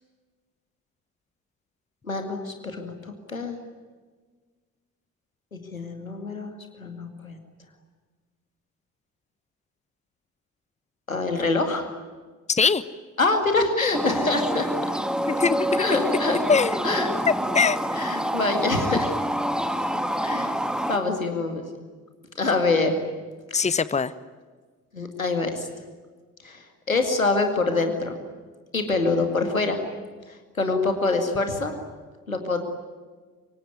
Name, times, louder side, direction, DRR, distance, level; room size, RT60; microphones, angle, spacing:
voice 1, 2.0-2.9 3.3-3.6 5.5-7.4 11.1-11.8 13.2-14.7 15.8-16.4 16.8-17.1 18.0-19.1 20.2-20.6 20.9-21.7 22.4-23.0 23.5-23.7 24.9-25.7 26.4-28.2 28.7-29.8 30.3-31.7 32.3-32.6, left 3 dB, 85° left, 6 dB, 2.3 m, -25 dB
voice 2, 12.5-12.8 15.3-16.0 16.5-16.8 17.5-17.8 23.5-24.1, left 5 dB, 15° left, 16 dB, 1.1 m, -22 dB
sound 1, 13.9-21.0, equal, ahead, 2.8 m, -27 dB
25.0 x 23.0 x 9.6 m, 1.4 s
figure-of-eight pair, 45°, 40 cm